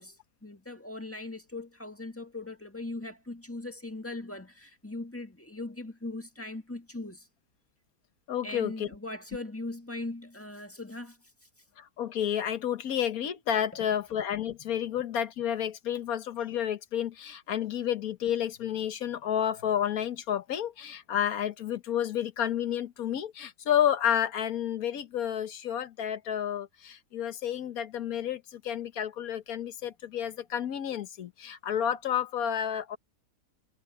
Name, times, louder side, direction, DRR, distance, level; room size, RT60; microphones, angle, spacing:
voice 1, 0.0-7.3 8.4-11.2, left 2 dB, 10° left, 1.6 m, -40 dB
voice 2, 8.3-8.9 11.8-33.0, left 9 dB, 75° left, 1.5 m, -30 dB
omnidirectional pair, 1.5 m